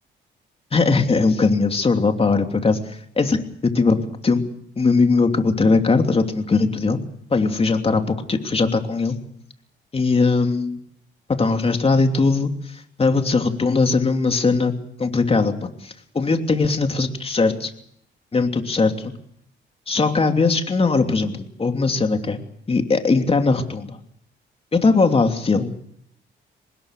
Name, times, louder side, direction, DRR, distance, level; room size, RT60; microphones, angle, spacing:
voice 1, 0.7-2.8 3.2-4.0 4.2-4.4 4.8-7.0 7.3-9.2 9.9-10.8 11.4-12.5 13.0-14.7 15.0-17.7 18.3-19.1 19.9-22.4 22.7-24.0 24.7-25.7, left 4 dB, 30° left, 5 dB, 3.0 m, -19 dB
24.5 x 20.5 x 6.6 m, 0.70 s
cardioid pair, 90°, 20 cm